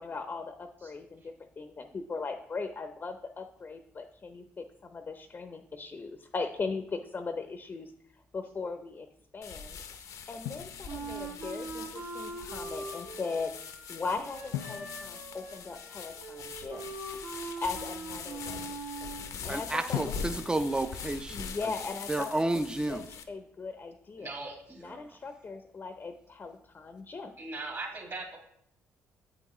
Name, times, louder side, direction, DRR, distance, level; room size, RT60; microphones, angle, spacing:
voice 1, 0.0-9.1 9.3-9.8 10.3-13.6 13.9-17.1 17.6-20.1 21.3-22.6 22.9-24.3 24.8-27.3, left 4 dB, 35° left, 8 dB, 0.7 m, -39 dB
sound 1, 9.4-23.2, left 6 dB, 65° left, 0.8 m, -43 dB
Drum, 10.5-11.5 14.5-16.4 19.9-21.9, left 12 dB, 85° left, 0.4 m, -41 dB
Wind instrument woodwind instrument, 10.9-19.3, right 3 dB, 75° right, 2.1 m, -42 dB
voice 2, 19.5-21.5 22.1-23.0 24.9-25.0, right 2 dB, 15° right, 9 dB, 0.5 m, -31 dB
voice 3, 24.2-24.8 27.4-28.4, right 3 dB, 50° right, -1 dB, 2.5 m, -39 dB
8.5 x 5.9 x 3.1 m, 0.73 s
supercardioid pair, 60°, 6 cm